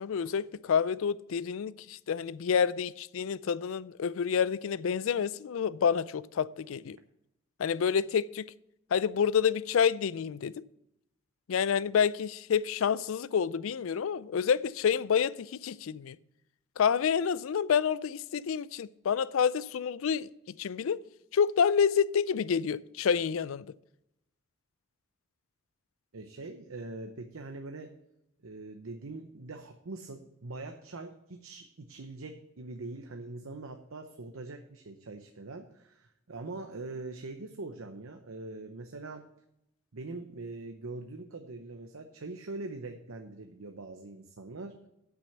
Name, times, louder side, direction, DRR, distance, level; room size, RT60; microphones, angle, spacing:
voice 1, 0.0-7.0 7.6-8.5 8.9-10.5 11.5-16.2 16.8-20.3 20.6-21.0 21.3-23.7, left 7 dB, 70° left, 0.4 m, -28 dB
voice 2, 26.1-27.9 28.4-39.2 39.9-44.9, right 3 dB, 75° right, 0.8 m, -43 dB
8.5 x 6.2 x 7.8 m
head